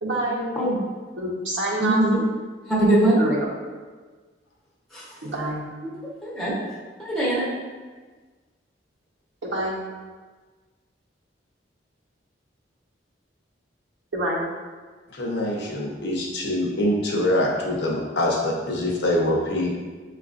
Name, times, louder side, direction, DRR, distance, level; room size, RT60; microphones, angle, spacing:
voice 1, 0.0-0.5 1.2-2.0 3.2-3.5 5.2-5.6 9.4-9.8 14.1-14.4, right 1 dB, 75° right, -4 dB, 0.8 m, -26 dB
voice 2, 1.8-2.2 2.7-3.2 4.9-5.0 6.2-6.5 7.0-7.5, right 1 dB, ahead, -7 dB, 0.9 m, -21 dB
voice 3, 15.1-19.8, left 1 dB, 65° left, -2 dB, 0.8 m, -24 dB
6.9 x 2.4 x 2.4 m, 1.4 s
head